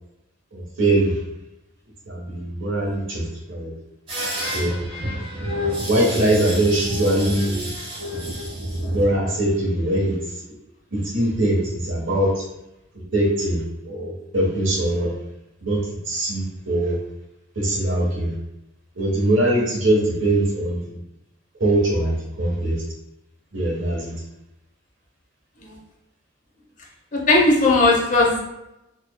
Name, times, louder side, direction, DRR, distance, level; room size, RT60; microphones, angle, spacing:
voice 1, 0.5-1.1 2.1-3.7 4.5-4.8 5.9-7.5 8.9-10.1 10.9-12.3 13.1-15.1 15.6-15.8 16.1-16.9 17.5-18.3 19.0-20.8 21.6-22.8 23.5-24.1, right 1 dB, 65° right, -2 dB, 1.1 m, -22 dB
sound 1, 4.1-9.1, equal, 25° right, 1.2 m, -28 dB
voice 2, 27.1-28.4, left 2 dB, 40° left, -1 dB, 0.8 m, -17 dB
4.2 x 3.0 x 2.2 m, 0.90 s
head